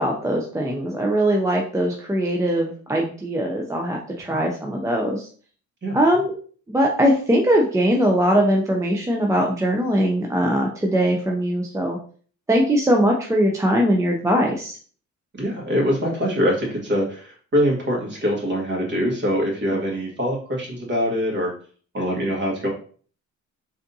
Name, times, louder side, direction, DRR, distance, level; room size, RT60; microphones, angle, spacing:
voice 1, 0.0-5.3 5.9-6.3 6.7-12.0 12.5-14.8, equal, 10° right, 0 dB, 0.5 m, -21 dB
voice 2, 15.3-21.5 21.9-22.7, equal, 35° right, -1 dB, 1.4 m, -23 dB
3.4 x 2.7 x 2.6 m, 0.44 s
cardioid pair, 90°, 30 cm